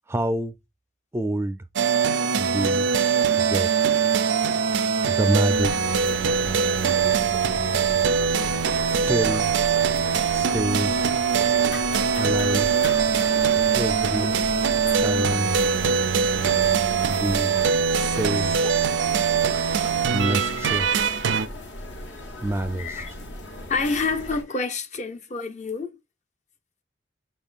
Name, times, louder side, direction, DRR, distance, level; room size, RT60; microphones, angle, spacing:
voice 1, 0.1-0.6 1.1-1.6 2.4-2.9 3.4-3.7 5.1-5.7 8.8-9.5 10.3-11.0 12.1-12.7 13.7-14.3 15.0-15.6 17.1-17.6 17.9-18.6 20.1-20.9 22.4-23.0, right 1 dB, 15° right, 0.3 m, -27 dB
sound 1, 1.8-21.5, right 6 dB, 80° right, 0.4 m, -22 dB
sound 2, 5.5-24.4, left 1 dB, 75° left, 1.3 m, -36 dB
voice 2, 20.5-20.8 22.8-23.1 23.7-26.0, left 4 dB, 40° left, 0.6 m, -29 dB
5.7 x 3.5 x 2.4 m
head